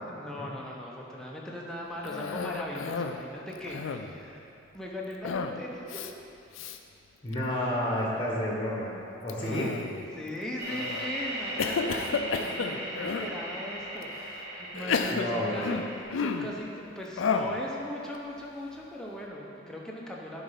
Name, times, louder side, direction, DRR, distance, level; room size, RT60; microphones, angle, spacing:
voice 1, 0.1-4.4 4.7-6.1 9.4-9.8 10.1-15.8 16.2-20.4, left 1 dB, 5° left, -3 dB, 0.7 m, -39 dB
Cough, 2.0-3.2 3.6-4.2 5.2-5.6 5.9-6.1 6.5-6.8 7.3-7.8 9.3-10.1 10.7-11.1 11.6-13.3 14.0-14.1 14.7-16.6 17.2-17.6, left 5 dB, 80° left, 0.4 m, -32 dB
voice 2, 7.2-8.9 9.2-9.7 15.1-15.8, equal, 25° left, -3 dB, 1.1 m, -30 dB
sound 1, 10.6-16.0, right 1 dB, 50° right, 1.7 m, -38 dB
8.5 x 4.0 x 5.7 m, 2.7 s
head